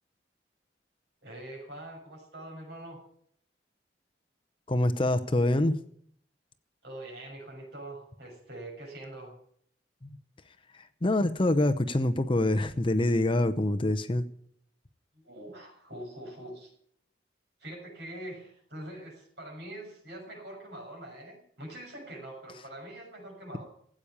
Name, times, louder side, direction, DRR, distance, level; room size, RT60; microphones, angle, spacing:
voice 1, 1.2-3.0 6.8-9.4 15.2-16.7 17.6-23.6, right 1 dB, 65° right, 1 dB, 6.4 m, -44 dB
voice 2, 4.7-5.8 11.0-14.2, left 1 dB, 30° left, 10 dB, 0.7 m, -25 dB
15.0 x 8.7 x 8.3 m, 0.64 s
head